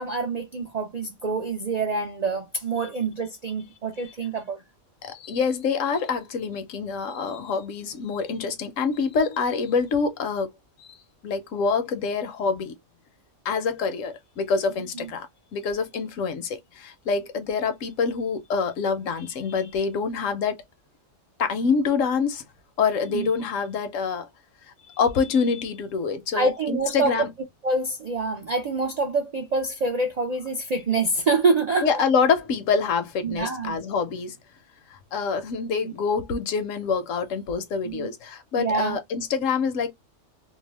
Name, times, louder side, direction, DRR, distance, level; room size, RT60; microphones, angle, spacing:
voice 1, 0.0-4.6 14.9-15.1 23.1-23.3 26.3-27.3 27.6-31.9 33.2-33.8 35.8-35.9 37.8-38.1 38.6-39.0, right 3 dB, 65° right, 0.4 m, -26 dB
voice 2, 5.0-10.5 10.8-10.9 11.2-12.7 13.4-20.6 21.4-22.4 22.8-24.3 24.9-27.3 31.8-34.4 34.9-39.9, left 5 dB, 80° left, 1.1 m, -26 dB
2.7 x 2.1 x 3.2 m
omnidirectional pair, 1.3 m